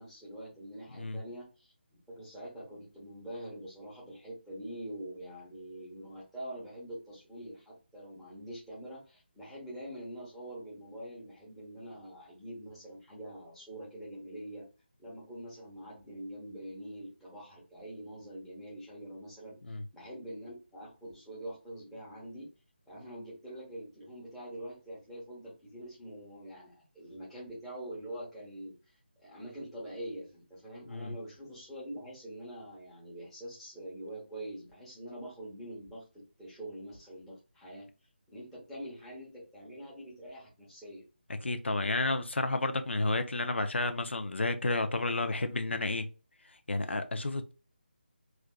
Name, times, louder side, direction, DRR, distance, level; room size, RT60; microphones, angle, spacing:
voice 1, 0.0-14.6 15.0-22.5 22.9-36.0 36.4-37.9 38.3-41.0, right 1 dB, 5° left, 0.9 m, -45 dB
voice 2, 41.3-46.1 46.4-47.5, left 2 dB, 90° left, 0.5 m, -31 dB
3.4 x 2.4 x 2.2 m
figure-of-eight pair, 165°, 6 cm